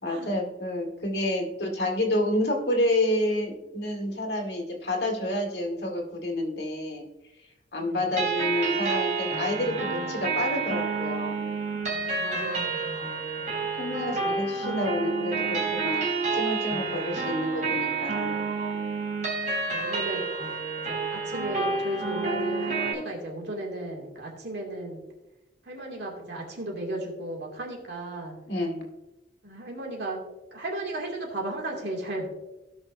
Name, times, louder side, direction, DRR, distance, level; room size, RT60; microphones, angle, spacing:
voice 1, 0.0-7.0 7.7-11.3 13.8-16.1 16.3-18.5 28.5-28.9, left 1 dB, 65° left, 1 dB, 1.9 m, -29 dB
sound 1, 8.2-22.9, right 4 dB, 40° right, 2.8 m, -29 dB
voice 2, 11.6-13.0 19.6-20.2 20.9-25.0 25.6-28.4 29.4-30.2 30.5-32.3, right 1 dB, 65° right, 0 dB, 2.4 m, -35 dB
17.0 x 6.0 x 2.6 m, 0.99 s
head